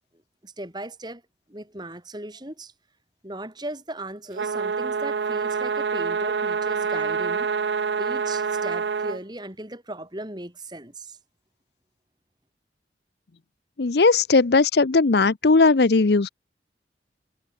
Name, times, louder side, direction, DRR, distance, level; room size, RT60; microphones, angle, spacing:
voice 1, 0.4-1.2 1.5-2.7 3.2-7.5 8.0-11.2, right 1 dB, 25° right, 4.6 m, -37 dB
sound 1, 4.3-9.2, right 5 dB, 75° right, 0.5 m, -26 dB
voice 2, 13.8-16.3, left 3 dB, 70° left, 0.7 m, -18 dB
head